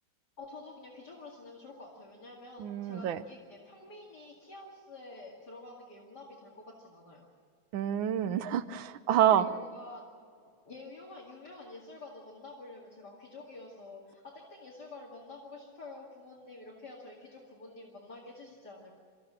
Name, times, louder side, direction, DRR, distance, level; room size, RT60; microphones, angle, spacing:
voice 1, 0.4-7.2 9.3-10.0 10.7-19.0, left 2 dB, 55° left, -2 dB, 2.8 m, -48 dB
voice 2, 2.6-3.2 7.7-9.5, right 10 dB, 80° right, 12 dB, 1.5 m, -27 dB
26.0 x 14.5 x 7.4 m, 2.2 s
omnidirectional pair, 2.2 m